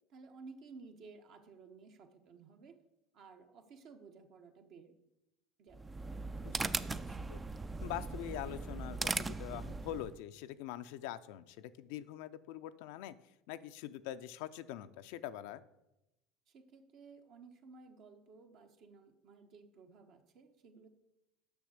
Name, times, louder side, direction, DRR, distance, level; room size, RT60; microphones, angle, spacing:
voice 1, 0.1-2.8 3.1-4.9 5.6-5.9 16.5-20.9, right 4 dB, 55° right, 5 dB, 1.2 m, -56 dB
sound 1, 5.7-10.2, right 3 dB, 20° right, 0.4 m, -39 dB
voice 2, 6.4-7.0 7.3-7.4 7.8-13.1 13.5-15.6, left 12 dB, 75° left, 12 dB, 0.4 m, -44 dB
6.9 x 6.1 x 6.5 m, 0.91 s
hypercardioid pair, 85°, 0 cm